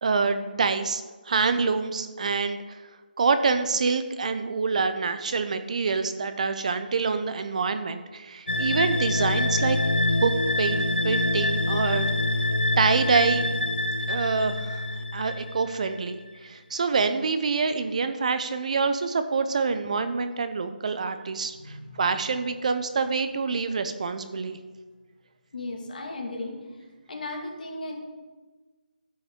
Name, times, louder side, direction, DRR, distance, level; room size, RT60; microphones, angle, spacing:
voice 1, 0.0-2.8 3.2-9.8 10.2-10.3 10.6-12.1 12.8-13.5 14.1-14.8 15.1-24.6, right 4 dB, 45° right, 10 dB, 0.6 m, -26 dB
sound 1, 8.5-16.0, left 2 dB, 85° left, 1.2 m, -26 dB
voice 2, 21.6-22.3 25.5-26.6 27.1-27.9, left 2 dB, 60° left, 1 dB, 2.1 m, -36 dB
14.0 x 5.4 x 3.7 m, 1.3 s
figure-of-eight pair, 160°, 5 cm